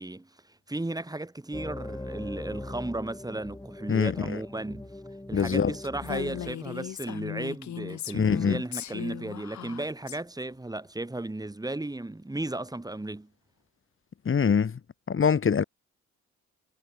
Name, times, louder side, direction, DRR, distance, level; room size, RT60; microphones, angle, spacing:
voice 1, 0.0-4.9 5.3-13.3, right 2 dB, 10° right, 7.7 m, -35 dB
sound 1, 1.5-6.5, left 1 dB, 10° left, 7.6 m, -41 dB
voice 2, 3.9-4.4 5.3-5.7 8.1-8.6 14.3-14.8 15.1-15.6, left 6 dB, 45° left, 3.8 m, -24 dB
Female speech woman speaking, 6.0-10.2, left 11 dB, 70° left, 3.7 m, -37 dB
cardioid pair, 90°, 30 cm